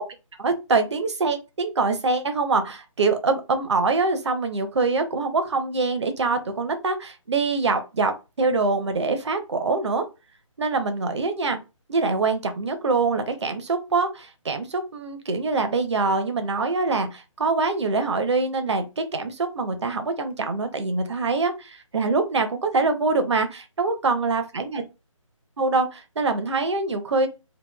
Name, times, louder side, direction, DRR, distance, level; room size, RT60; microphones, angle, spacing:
voice 1, 0.4-10.0 10.6-11.6 11.9-24.8 25.6-27.3, right 3 dB, 55° right, 8 dB, 0.7 m, -24 dB
2.9 x 2.2 x 2.3 m, 0.27 s
figure-of-eight pair, 165°, 17 cm